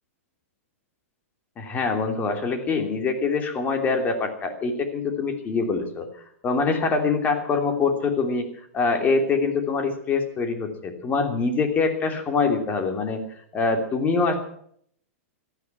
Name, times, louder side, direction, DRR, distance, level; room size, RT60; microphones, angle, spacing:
voice 1, 1.6-6.1 6.4-8.5 8.7-13.2 13.5-14.4, left 4 dB, 20° left, 5 dB, 3.1 m, -24 dB
18.0 x 13.0 x 5.9 m, 0.64 s
hypercardioid pair, 145°, 8 cm